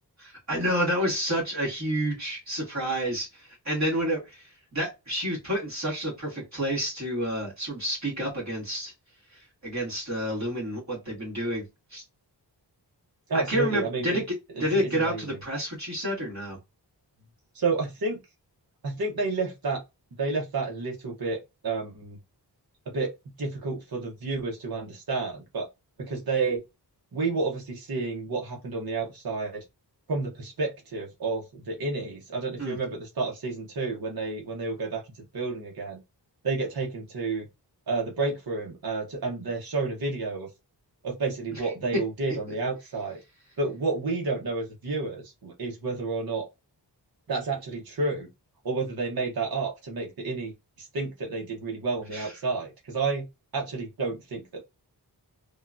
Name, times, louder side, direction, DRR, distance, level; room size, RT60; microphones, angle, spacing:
voice 1, 0.2-8.9 9.3-11.6 11.9-12.0 13.3-14.2 14.6-16.6 32.6-32.8 41.5-41.7 52.1-52.3, equal, 40° right, 1.8 m, -29 dB
voice 2, 13.3-14.2 14.6-15.4 17.5-18.2 18.8-19.8 20.2-22.2 22.9-23.1 23.4-25.7 26.0-26.6 27.1-29.6 30.1-35.0 35.3-36.0 36.4-37.5 37.9-40.5 41.0-43.2 43.6-46.5 47.3-48.3 48.6-53.2 53.5-54.6, right 3 dB, 60° right, 0.9 m, -30 dB
3.5 x 2.3 x 2.4 m
wide cardioid pair, 100°, 42 cm